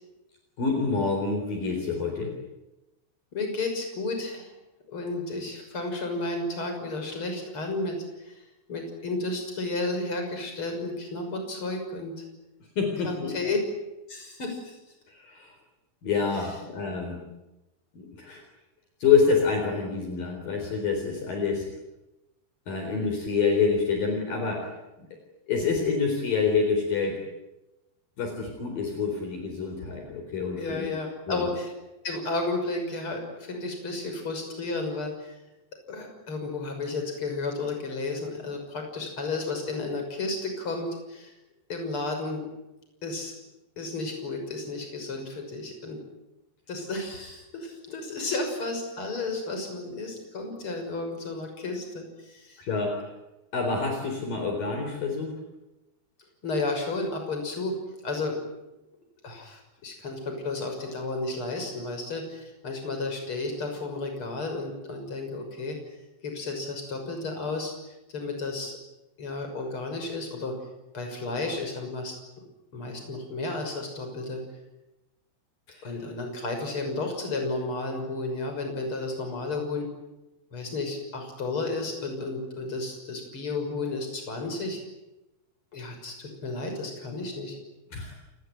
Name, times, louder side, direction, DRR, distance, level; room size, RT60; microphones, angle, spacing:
voice 1, 0.6-2.4 12.8-13.3 15.1-15.5 16.0-17.2 17.9-18.4 19.0-21.7 22.7-24.7 25.5-27.2 28.2-30.9 31.3-31.5 52.6-53.1 53.5-55.4 75.7-76.0 87.9-88.1, left 5 dB, 55° left, 3 dB, 5.6 m, -27 dB
voice 2, 3.3-4.5 4.9-8.4 8.7-12.1 13.0-13.6 14.1-14.8 30.6-31.7 32.0-35.3 35.9-41.3 41.7-42.4 43.0-43.3 43.8-46.0 46.7-52.6 56.4-57.8 58.0-58.3 59.2-65.8 66.2-68.8 69.2-70.5 70.9-72.1 72.7-74.4 75.8-79.9 80.5-84.8 85.7-87.5, left 3 dB, 30° left, 4 dB, 6.8 m, -32 dB
29.5 x 20.5 x 9.4 m, 0.99 s
omnidirectional pair, 4.9 m